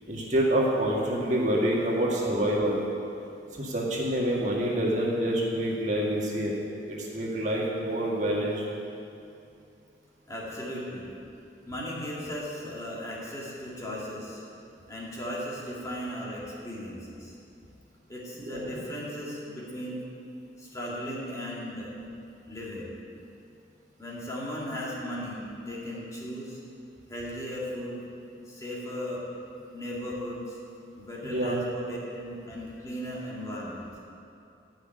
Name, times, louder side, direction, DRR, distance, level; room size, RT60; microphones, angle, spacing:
voice 1, 0.1-2.8 3.5-8.6 18.4-18.8 31.2-31.6, right 1 dB, 40° right, -4 dB, 1.9 m, -27 dB
voice 2, 10.3-11.1 11.7-14.4 14.9-17.3 18.1-20.1 20.6-21.9 22.5-22.9 24.0-26.6 27.1-28.1 28.4-29.2 29.7-30.6 31.0-34.0, equal, 20° left, -6 dB, 2.3 m, -36 dB
13.0 x 6.0 x 9.1 m, 2.6 s
head